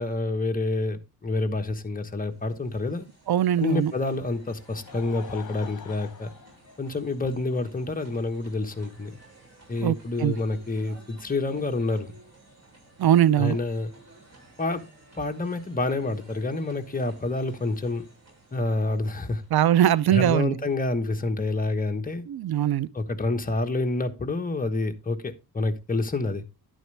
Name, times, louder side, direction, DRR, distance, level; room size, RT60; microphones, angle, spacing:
voice 1, 0.0-3.1 3.6-6.3 6.8-9.2 9.7-12.1 13.4-13.9 14.6-14.8 15.2-18.0 18.5-19.4 20.1-22.2 22.9-26.4, left 2 dB, 25° left, 1.2 m, -28 dB
sound 1, 2.1-20.0, right 2 dB, 45° right, 7.2 m, -54 dB
voice 2, 3.3-3.9 9.8-10.4 13.0-13.6 19.5-20.5 22.3-22.9, right 11 dB, 80° right, 0.5 m, -21 dB
Laughter, 4.4-7.4 8.2-8.3 9.8-9.9, left 7 dB, 55° left, 1.4 m, -45 dB
11.0 x 9.1 x 3.3 m
wide cardioid pair, 115°, 37 cm